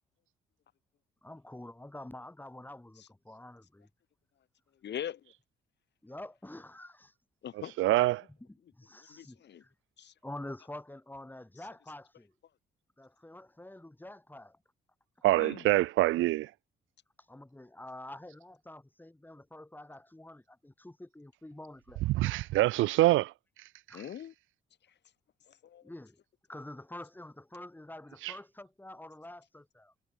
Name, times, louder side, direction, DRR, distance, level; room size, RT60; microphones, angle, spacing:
voice 1, 1.2-3.9 6.0-7.1 8.5-9.7 10.2-12.3 13.0-14.6 17.3-22.0 23.9-24.1 25.8-26.2 26.5-29.9, left 1 dB, 10° left, 6.2 m, -47 dB
voice 2, 4.8-5.2 7.4-7.7 9.0-9.6 10.0-10.1 15.4-15.7 23.9-24.3 25.5-25.8, left 10 dB, 60° left, 2.0 m, -41 dB
voice 3, 7.5-8.2 15.2-16.5 22.0-23.3 28.2-28.4, right 17 dB, 85° right, 0.5 m, -25 dB
cardioid pair, 90°, 20 cm